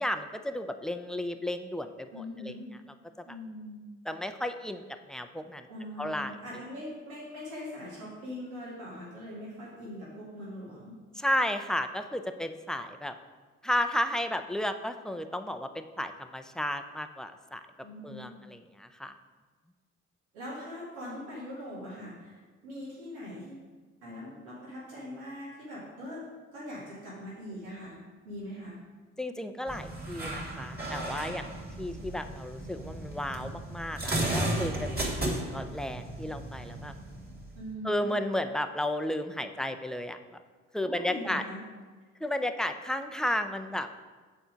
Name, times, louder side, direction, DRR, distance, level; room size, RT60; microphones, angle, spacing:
voice 1, 0.0-2.5 3.2-3.3 4.1-5.7 6.0-6.3 11.2-13.1 13.6-17.6 18.0-19.1 29.2-31.5 31.8-36.9 37.8-40.4 40.7-41.4 42.2-43.9, left 1 dB, ahead, 7 dB, 0.5 m, -33 dB
voice 2, 2.1-2.7 3.2-3.9 5.7-11.0 17.8-18.3 20.3-23.7 24.0-26.3 26.5-28.8 37.5-38.2 40.8-41.6, left 1 dB, 90° right, -8 dB, 2.2 m, -41 dB
sound 1, 29.7-37.7, right 1 dB, 25° right, 2.2 m, -35 dB
7.0 x 4.4 x 5.1 m, 1.4 s
hypercardioid pair, 50°, 37 cm